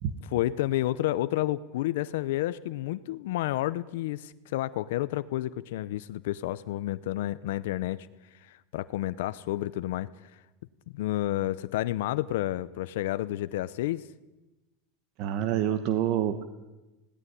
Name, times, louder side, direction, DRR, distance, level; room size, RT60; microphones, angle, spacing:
voice 1, 0.3-10.3 10.9-14.1, left 15 dB, 70° left, 14 dB, 0.7 m, -30 dB
voice 2, 15.2-16.4, right 10 dB, 45° right, 11 dB, 1.1 m, -27 dB
19.0 x 17.0 x 9.8 m, 1.1 s
supercardioid pair, 170°, 0 cm